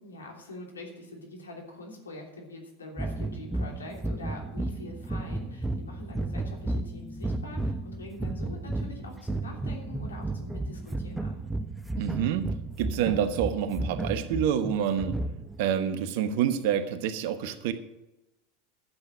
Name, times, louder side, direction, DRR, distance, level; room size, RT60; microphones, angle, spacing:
voice 1, 0.0-11.4, left 1 dB, 90° left, 1 dB, 3.0 m, -44 dB
sound 1, 3.0-15.7, right 2 dB, 5° right, 0.9 m, -33 dB
voice 2, 12.0-15.2 15.6-17.7, right 9 dB, 65° right, 11 dB, 1.1 m, -28 dB
11.5 x 8.0 x 6.3 m, 0.94 s
hypercardioid pair, 85°, 0 cm